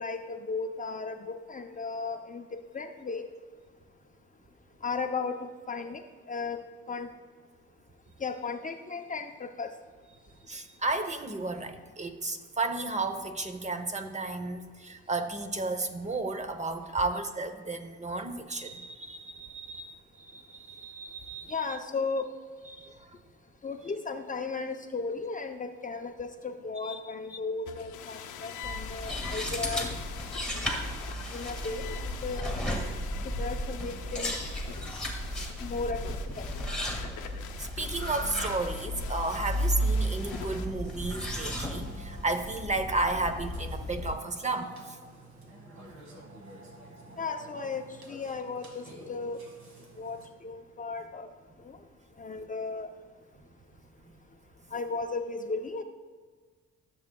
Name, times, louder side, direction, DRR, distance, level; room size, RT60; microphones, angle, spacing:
voice 1, 0.0-2.4 2.7-3.2 4.8-6.0 6.3-6.6 6.9-7.1 8.2-9.7 21.5-22.2 23.6-29.9 31.3-32.5 33.4-34.4 35.6-36.0 36.4-36.5 47.2-49.4 50.0-51.3 51.6-51.8 52.2-52.9 54.7-55.8, left 4 dB, 25° left, 6 dB, 0.5 m, -35 dB
voice 2, 10.5-21.5 22.7-23.0 26.8-27.0 27.3-27.4 37.6-44.7, right 2 dB, 25° right, 8 dB, 0.7 m, -33 dB
sound 1, 27.7-40.7, left 8 dB, 80° left, 0.7 m, -44 dB
sound 2, 28.6-44.1, equal, 5° left, 1.7 m, -34 dB
Burping eructation, 39.7-50.3, right 2 dB, 65° right, 1.8 m, -51 dB
13.5 x 7.2 x 2.2 m, 1.5 s
cardioid pair, 90°, 30 cm